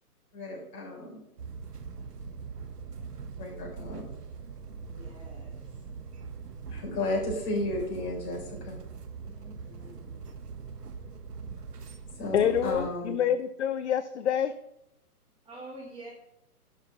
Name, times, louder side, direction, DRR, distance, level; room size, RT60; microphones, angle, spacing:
voice 1, 0.3-1.2 3.4-4.0 6.7-8.8 12.1-13.2, left 1 dB, 25° left, -2 dB, 3.9 m, -33 dB
sound 1, 1.4-12.9, right 5 dB, 80° right, 1.3 m, -42 dB
voice 2, 4.8-5.6 9.2-10.1 15.4-16.1, right 2 dB, 10° right, -3 dB, 1.4 m, -47 dB
voice 3, 12.3-14.5, left 9 dB, 50° left, 11 dB, 0.6 m, -27 dB
11.0 x 5.3 x 6.0 m, 0.82 s
hypercardioid pair, 140°, 46 cm